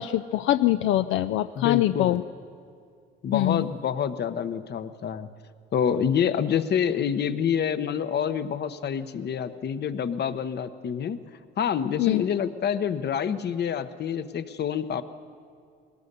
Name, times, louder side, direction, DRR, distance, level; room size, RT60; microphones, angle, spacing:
voice 1, 0.0-2.2 3.3-3.7 12.0-12.2, left 14 dB, 85° left, 11 dB, 0.5 m, -23 dB
voice 2, 1.5-2.2 3.2-5.3 5.7-11.2 11.6-15.0, left 8 dB, 55° left, 12 dB, 1.0 m, -27 dB
21.0 x 18.5 x 6.8 m, 2.3 s
cardioid pair, 90°, 20 cm